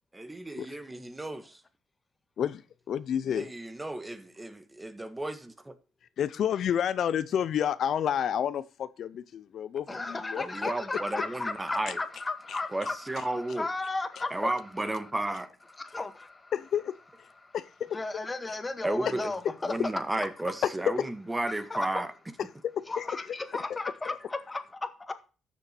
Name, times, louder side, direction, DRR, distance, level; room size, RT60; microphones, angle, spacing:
voice 1, 0.1-1.6 3.3-5.7 10.4-12.0 12.7-13.7 14.3-15.5 18.8-19.3 19.6-22.1, right 2 dB, 15° right, 1.5 m, -33 dB
voice 2, 2.9-3.5 6.2-9.8 10.3-10.4 11.9-12.0 12.5-12.6 16.5-17.0 17.5-17.9 20.6-21.1 22.6-23.0 23.7-23.8, left 9 dB, 65° left, 0.6 m, -29 dB
voice 3, 9.9-14.5 15.7-16.5 17.4-17.6 17.9-19.9 21.7-21.8 22.9-25.1, left 3 dB, 20° left, 1.8 m, -35 dB
13.0 x 7.0 x 4.4 m
cardioid pair, 90°, 0 cm